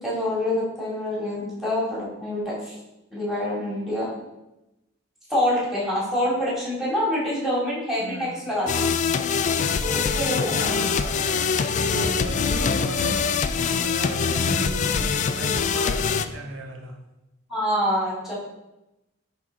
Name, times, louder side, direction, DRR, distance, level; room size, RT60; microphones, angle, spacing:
voice 1, 0.0-2.7 3.1-4.1 5.3-9.0 9.8-10.7 17.5-18.4, left 1 dB, ahead, -7 dB, 2.6 m, -26 dB
voice 2, 8.0-8.4 10.0-17.0, right 2 dB, 85° right, 2 dB, 1.0 m, -36 dB
sound 1, 8.7-16.3, left 6 dB, 40° left, 0.3 m, -24 dB
10.0 x 3.7 x 3.7 m, 0.96 s
head